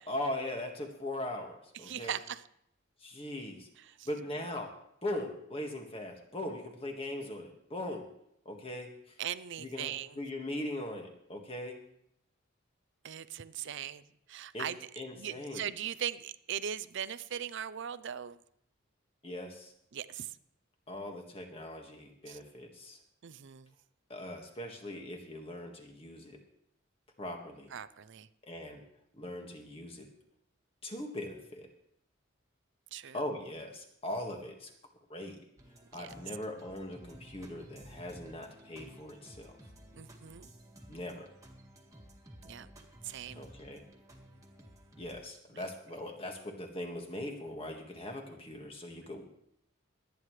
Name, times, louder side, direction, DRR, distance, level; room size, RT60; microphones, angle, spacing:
voice 1, 0.0-2.2 3.0-3.7 4.1-4.7 5.0-8.1 8.5-8.9 9.6-11.8 14.5-14.7 15.0-15.6 19.2-19.7 20.9-23.0 24.1-26.4 27.2-27.7 28.4-28.8 29.1-30.1 30.8-31.7 33.1-34.7 35.1-35.4 35.9-39.5 40.9-41.3 43.4-43.8 45.0-49.2, left 1 dB, 30° left, 2 dB, 1.8 m, -40 dB
voice 2, 1.8-2.4 3.8-4.1 9.2-10.2 13.0-14.0 14.3-14.8 15.2-18.4 19.9-20.4 22.3-22.4 23.2-23.7 27.7-28.3 32.9-33.2 35.9-36.1 40.0-40.5 42.4-42.7 43.0-43.5 45.5-45.6, right 9 dB, 60° right, 14 dB, 0.5 m, -39 dB
sound 1, 35.6-45.2, right 1 dB, 15° right, 1.7 m, -54 dB
23.0 x 9.4 x 3.2 m, 0.75 s
head